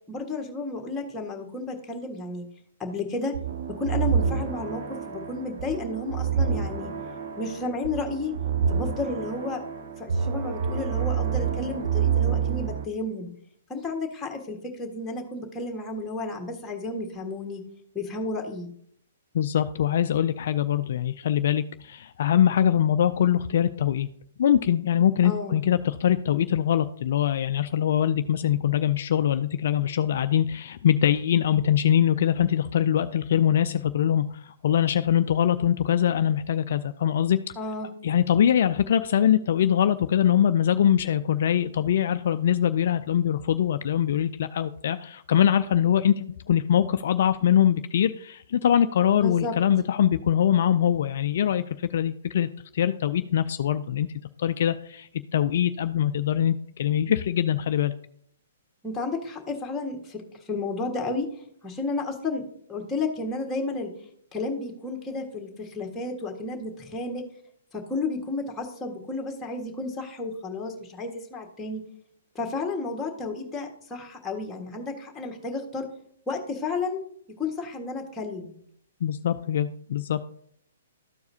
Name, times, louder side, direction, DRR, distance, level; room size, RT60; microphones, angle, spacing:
voice 1, 0.1-2.5 2.8-3.3 3.7-6.9 7.4-8.3 8.7-9.6 10.0-13.3 13.7-17.6 17.9-18.7 25.2-25.6 37.6-37.9 49.1-49.5 58.8-60.2 60.5-61.3 61.6-62.4 62.7-63.9 64.3-67.2 67.7-71.8 72.3-75.9 76.3-77.0 77.4-78.5, left 3 dB, 10° left, 1 dB, 1.5 m, -32 dB
sound 1, 3.3-12.9, right 7 dB, 60° right, 0.7 m, -28 dB
voice 2, 19.3-24.1 24.4-37.4 38.0-52.5 52.7-54.1 54.4-57.9 79.0-80.2, left 10 dB, 60° left, 10 dB, 0.3 m, -23 dB
13.5 x 4.7 x 2.7 m, 0.67 s
hypercardioid pair, 125°, 0 cm